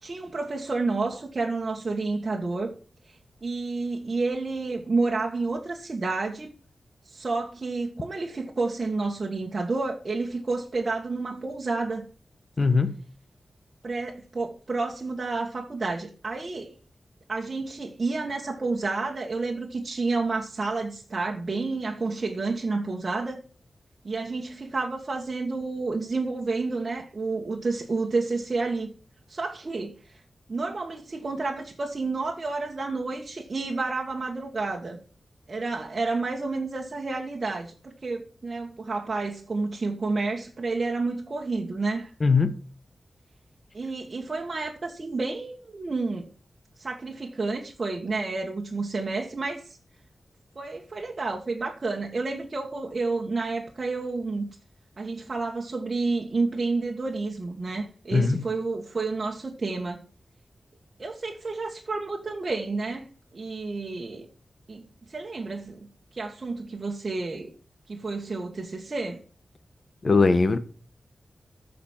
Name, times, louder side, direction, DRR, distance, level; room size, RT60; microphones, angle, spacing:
voice 1, 0.0-2.7 3.1-6.5 7.0-12.0 13.8-16.7 17.3-23.4 24.0-28.9 29.3-30.2 30.5-35.0 35.5-42.1 43.7-46.3 46.8-49.8 50.5-54.4 55.0-60.0 61.0-63.1 63.3-64.3 64.7-64.8 65.1-65.9 66.1-67.5 67.9-69.2, right 3 dB, 45° right, 1.6 m, -30 dB
voice 2, 12.6-13.0 42.2-42.6 58.1-58.4 70.0-70.6, left 4 dB, 45° left, 1.2 m, -20 dB
13.5 x 5.2 x 7.3 m
wide cardioid pair, 85°, 0 cm